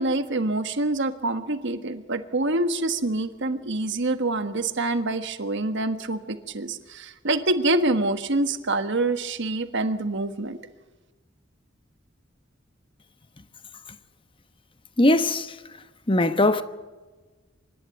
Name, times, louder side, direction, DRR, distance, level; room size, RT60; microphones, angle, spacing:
voice 1, 0.0-10.6, right 2 dB, 65° right, 1.4 m, -26 dB
voice 2, 15.0-15.6 16.1-16.6, left 1 dB, 25° left, 1.0 m, -20 dB
26.0 x 11.5 x 9.2 m
head